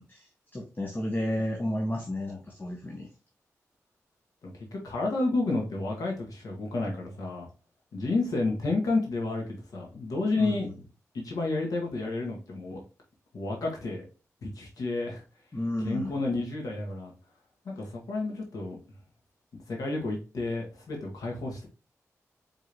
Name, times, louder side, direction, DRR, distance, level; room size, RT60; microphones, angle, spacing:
voice 1, 0.0-3.1 10.4-10.7 15.5-16.2, left 1 dB, 35° left, 1 dB, 1.0 m, -32 dB
voice 2, 4.4-7.5 7.9-10.7 11.1-12.8 13.3-14.0 14.4-15.2 15.8-17.1 17.7-18.8 19.7-21.7, left 2 dB, 80° left, -1 dB, 1.6 m, -31 dB
4.7 x 3.5 x 2.8 m, 0.34 s
cardioid pair, 45°, 6 cm